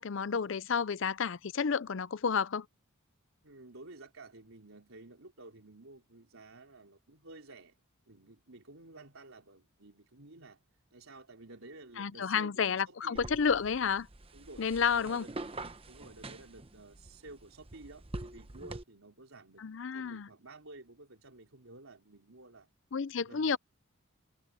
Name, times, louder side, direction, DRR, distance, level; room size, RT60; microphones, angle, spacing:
voice 1, 0.0-2.7 12.0-14.1 14.6-15.2 19.6-20.3 22.9-23.6, left 6 dB, 60° left, 0.5 m, -31 dB
voice 2, 3.4-7.8 8.1-10.6 10.9-13.2 14.3-14.6 14.9-15.3 15.9-19.6 19.9-22.7 23.2-23.6, right 2 dB, 75° right, 3.7 m, -52 dB
sound 1, 13.2-18.8, right 2 dB, 25° right, 0.9 m, -45 dB
head